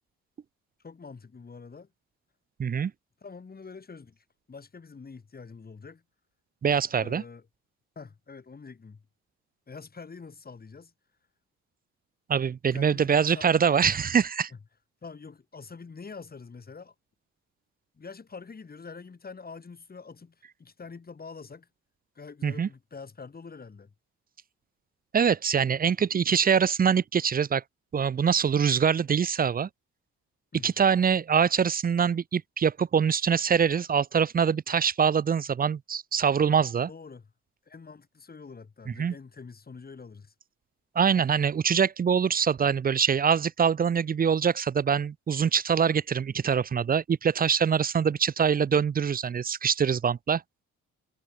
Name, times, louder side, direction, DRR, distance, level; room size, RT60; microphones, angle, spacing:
voice 1, 0.8-1.9 3.2-6.0 7.0-7.4 8.0-9.0 9.7-10.9 12.7-13.5 15.0-16.9 17.9-21.7 22.2-23.9 30.5-30.7 36.9-37.3 37.7-40.3, left 5 dB, 30° left, 3.8 m, -45 dB
voice 2, 2.6-2.9 6.6-7.2 12.3-14.5 22.4-22.7 25.1-27.6 27.9-29.7 30.6-36.9 38.9-39.1 41.0-50.4, right 7 dB, 30° right, 0.5 m, -24 dB
cardioid pair, 90°, 30 cm